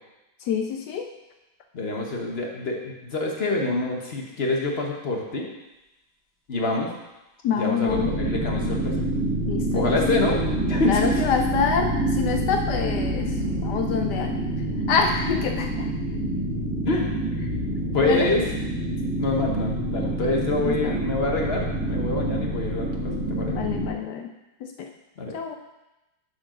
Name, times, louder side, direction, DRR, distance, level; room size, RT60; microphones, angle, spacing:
voice 1, 0.4-1.1 7.4-8.1 9.5-10.0 10.8-13.3 13.6-14.4 14.9-15.9 18.0-18.3 20.6-21.0 23.5-24.3 24.6-24.9 25.3-25.6, left 6 dB, 70° left, 4 dB, 1.1 m, -26 dB
voice 2, 1.7-5.5 6.5-6.9 7.5-9.0 9.7-10.4 10.7-11.2 16.8-17.1 17.9-18.4 19.2-23.6 25.2-25.3, left 2 dB, 45° left, 0 dB, 0.9 m, -26 dB
sound 1, 7.9-23.9, right 1 dB, ahead, 2.3 m, -27 dB
6.8 x 4.6 x 6.0 m, 0.99 s
omnidirectional pair, 2.1 m